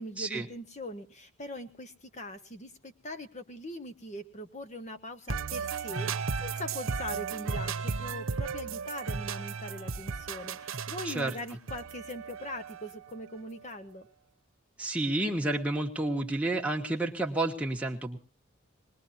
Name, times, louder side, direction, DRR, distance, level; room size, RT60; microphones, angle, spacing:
voice 1, 0.0-14.1, left 1 dB, 35° left, 9 dB, 1.3 m, -41 dB
sound 1, 5.3-13.1, right 5 dB, 70° right, 1.0 m, -35 dB
voice 2, 14.8-18.2, right 2 dB, 5° right, 0 dB, 1.6 m, -30 dB
20.5 x 20.5 x 2.8 m, 0.35 s
head